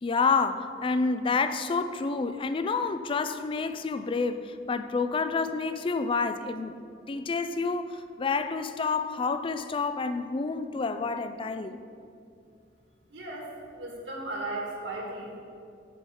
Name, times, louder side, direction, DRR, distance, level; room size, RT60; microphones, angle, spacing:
voice 1, 0.0-6.8 7.1-11.8, left 4 dB, 30° left, 10 dB, 0.4 m, -29 dB
voice 2, 13.1-15.4, right 2 dB, 70° right, -1 dB, 1.8 m, -36 dB
9.2 x 5.4 x 5.5 m, 2.4 s
head